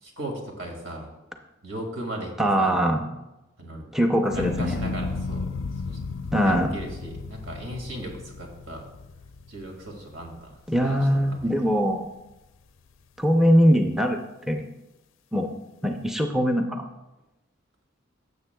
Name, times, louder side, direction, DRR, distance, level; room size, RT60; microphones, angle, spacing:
voice 1, 0.0-1.1 1.6-2.8 3.6-3.8 4.3-5.5 5.9-6.0 6.3-8.8 9.5-11.5, right 1 dB, 75° right, 1 dB, 2.2 m, -37 dB
voice 2, 2.4-3.1 3.9-4.8 6.3-6.7 10.7-12.1 13.2-14.2 14.5-14.7 15.3-15.5 15.8-16.8, equal, ahead, 3 dB, 0.6 m, -22 dB
sound 1, 4.3-10.6 11.1-11.7, left 3 dB, 70° left, 0.4 m, -34 dB
16.0 x 7.3 x 2.3 m, 0.99 s
head